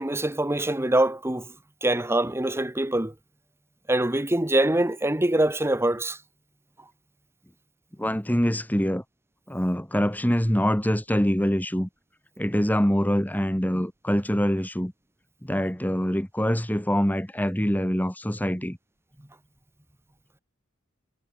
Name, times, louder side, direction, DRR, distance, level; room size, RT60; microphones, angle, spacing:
voice 1, 0.0-1.5 1.8-3.1 3.9-6.2, right 1 dB, 10° right, 1.2 m, -24 dB
voice 2, 8.0-9.0 9.5-11.9 12.4-14.9 15.4-18.8, equal, 10° left, 2.6 m, -24 dB
head